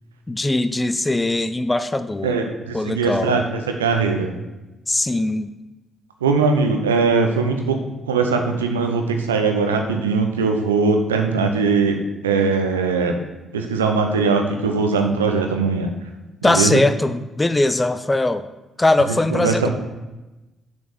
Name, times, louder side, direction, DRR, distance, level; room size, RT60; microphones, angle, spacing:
voice 1, 0.3-2.4 2.7-3.4 4.9-5.5 16.4-18.5 18.8-19.7, left 2 dB, 20° left, 12 dB, 0.5 m, -20 dB
voice 2, 2.2-4.3 6.2-13.2 13.5-15.9 16.4-16.8 19.3-19.7, right 4 dB, 90° right, 4 dB, 0.6 m, -20 dB
6.7 x 5.2 x 6.1 m, 1.0 s
hypercardioid pair, 45°, 0 cm